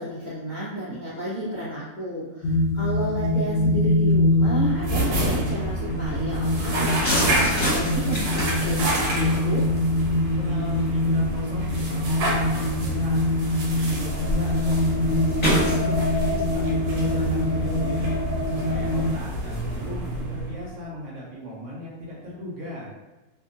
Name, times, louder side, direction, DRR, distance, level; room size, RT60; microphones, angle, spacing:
voice 1, 0.0-9.6, equal, 55° left, -10 dB, 0.5 m, -32 dB
sound 1, 2.4-19.1, left 1 dB, 90° left, 1.1 m, -24 dB
sound 2, 4.7-20.8, right 1 dB, 90° right, 1.3 m, -30 dB
sound 3, 7.0-19.5, equal, 20° left, 1.3 m, -32 dB
voice 2, 10.3-13.2 13.4-14.8 15.4-18.2 18.5-22.9, equal, 60° right, -5 dB, 1.0 m, -38 dB
2.8 x 2.6 x 2.5 m, 1.1 s
omnidirectional pair, 1.6 m